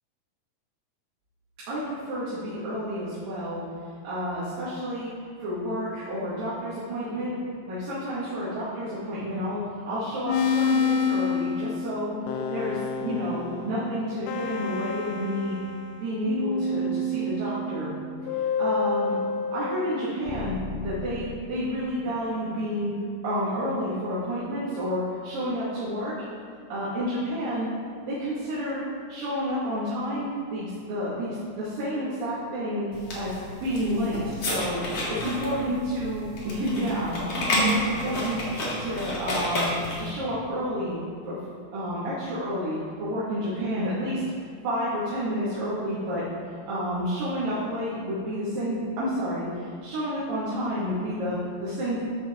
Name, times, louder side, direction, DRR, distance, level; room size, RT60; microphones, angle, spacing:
voice 1, 1.7-3.6 4.0-5.1 5.4-7.4 7.7-12.1 12.5-15.6 16.0-17.9 18.6-19.2 19.5-20.6 20.8-22.9 23.2-26.1 26.7-27.7 28.1-28.8 29.1-32.8 33.1-34.8 35.1-38.4 38.8-41.0 41.3-41.4 41.7-44.2 44.6-46.2 46.7-52.1, equal, 80° right, -11 dB, 4.0 m, -30 dB
sound 1, 10.3-16.0 16.3-21.4, left 4 dB, 80° left, 2.1 m, -29 dB
sound 2, 32.9-40.1, equal, 50° left, 3.4 m, -30 dB
12.0 x 7.3 x 3.9 m, 2.2 s
omnidirectional pair, 3.9 m